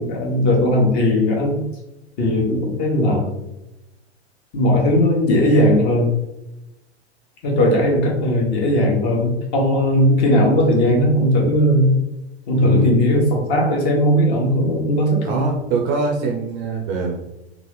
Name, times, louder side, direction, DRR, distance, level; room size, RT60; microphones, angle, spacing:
voice 1, 0.0-1.6 2.2-3.3 4.5-6.1 7.4-12.0 12.5-15.4, left 1 dB, 30° left, -1 dB, 1.0 m, -17 dB
voice 2, 12.6-12.9 15.2-17.2, right 4 dB, 30° right, 0 dB, 0.4 m, -23 dB
2.9 x 2.5 x 3.1 m, 0.93 s
figure-of-eight pair, 100°, 34 cm